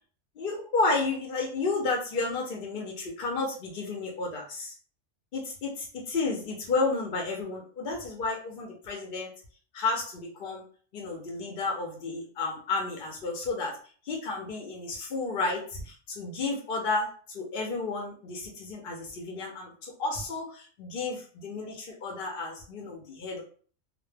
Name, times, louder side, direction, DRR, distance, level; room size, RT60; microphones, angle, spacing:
voice 1, 0.4-4.7 5.3-9.3 9.7-10.6 10.9-13.8 14.0-23.4, left 3 dB, 60° left, 0 dB, 0.7 m, -32 dB
2.1 x 2.1 x 3.2 m, 0.43 s
omnidirectional pair, 1.2 m